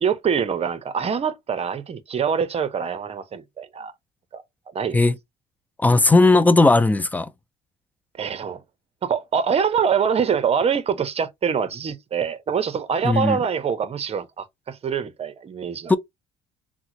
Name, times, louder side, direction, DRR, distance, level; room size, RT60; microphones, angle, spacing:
voice 1, 0.0-3.9 4.3-4.4 4.7-5.0 8.2-8.6 9.0-15.9, right 7 dB, 35° right, 0.7 m, -24 dB
voice 2, 5.8-7.3 13.0-13.4 15.9-16.0, left 2 dB, 10° left, 0.4 m, -16 dB
3.7 x 2.1 x 2.8 m
cardioid pair, 110°, 17 cm